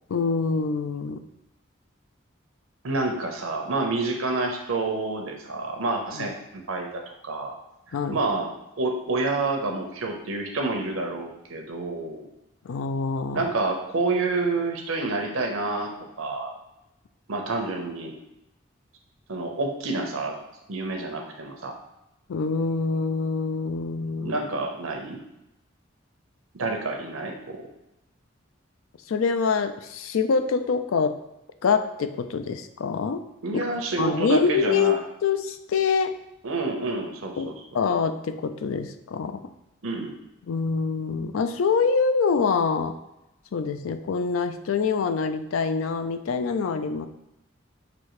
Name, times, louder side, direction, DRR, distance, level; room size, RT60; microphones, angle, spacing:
voice 1, 0.1-1.2 6.2-6.3 7.9-8.2 12.6-13.4 22.3-24.4 29.1-31.2 31.6-33.2 33.5-33.6 34.0-36.1 37.4-39.4 40.5-43.0 43.5-47.1, left 5 dB, 85° left, 9 dB, 0.4 m, -25 dB
voice 2, 2.8-7.5 8.1-8.5 8.8-12.3 13.3-15.9 16.2-16.5 17.3-18.1 19.3-20.4 20.7-21.7 24.2-25.2 26.5-27.6 33.4-35.0 36.4-37.5 39.8-40.1, right 3 dB, 90° right, 3 dB, 0.8 m, -28 dB
6.0 x 2.8 x 3.1 m, 0.90 s
head